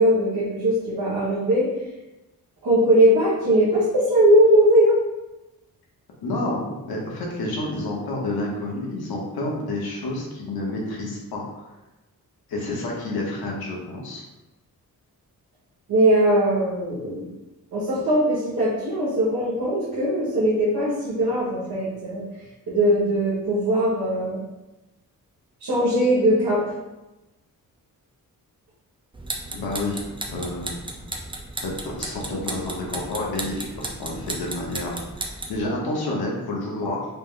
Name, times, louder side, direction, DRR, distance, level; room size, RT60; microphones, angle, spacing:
voice 1, 0.0-1.7 2.6-4.9 15.9-17.3 17.7-22.2 22.7-24.4 25.6-26.6, right 1 dB, 80° right, -10 dB, 1.3 m, -20 dB
voice 2, 6.2-11.4 12.5-14.2 29.5-30.7 31.6-37.1, left 2 dB, 85° left, -2 dB, 1.1 m, -29 dB
sound 1, 29.1-35.6, right 2 dB, 15° right, 0.4 m, -34 dB
4.1 x 2.1 x 3.7 m, 1.0 s
wide cardioid pair, 125°, 36 cm